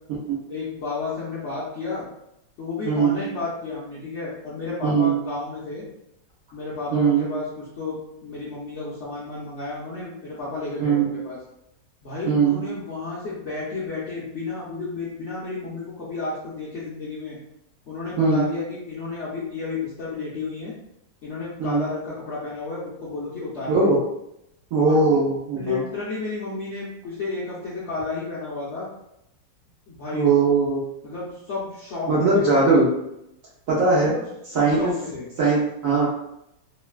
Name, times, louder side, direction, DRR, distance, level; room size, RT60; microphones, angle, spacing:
voice 1, 0.5-2.0 2.6-5.8 6.5-11.4 12.0-17.4 17.9-20.7 21.2-23.7 24.8-25.2 25.5-28.9 29.9-30.3 31.0-32.5 34.0-34.3 34.5-35.3, left 3 dB, 65° left, -8 dB, 0.6 m, -32 dB
voice 2, 2.9-3.2 4.8-5.2 6.9-7.3 10.8-11.1 12.3-12.6 18.2-18.5 21.6-21.8 23.7-24.0 24.7-25.8 30.1-30.8 32.1-32.9 33.7-34.1 34.5-34.9 35.4-36.1, right 4 dB, 65° right, -6 dB, 0.9 m, -20 dB
3.0 x 2.2 x 2.3 m, 0.81 s
omnidirectional pair, 1.9 m